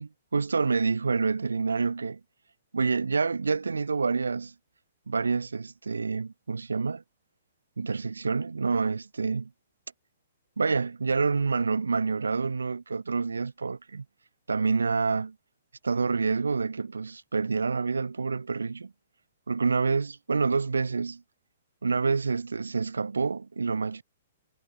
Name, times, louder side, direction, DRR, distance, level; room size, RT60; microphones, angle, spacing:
voice 1, 0.0-2.2 2.7-4.5 5.1-7.0 7.8-9.5 10.6-14.0 14.5-15.3 15.8-18.9 19.5-21.2 21.8-24.0, right 4 dB, 80° right, 4.4 m, -27 dB
figure-of-eight pair, 115°, 0 cm